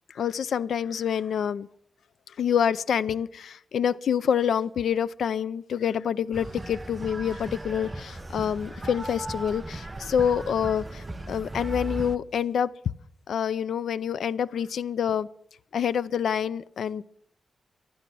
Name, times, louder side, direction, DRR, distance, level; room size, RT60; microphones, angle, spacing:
voice 1, 0.1-1.7 2.4-12.7 13.3-15.3 15.7-17.0, left 8 dB, 80° left, 0.5 m, -27 dB
sound 1, 6.3-12.2, right 2 dB, 20° right, 0.7 m, -37 dB
15.0 x 11.5 x 6.2 m
wide cardioid pair, 140°, 0 cm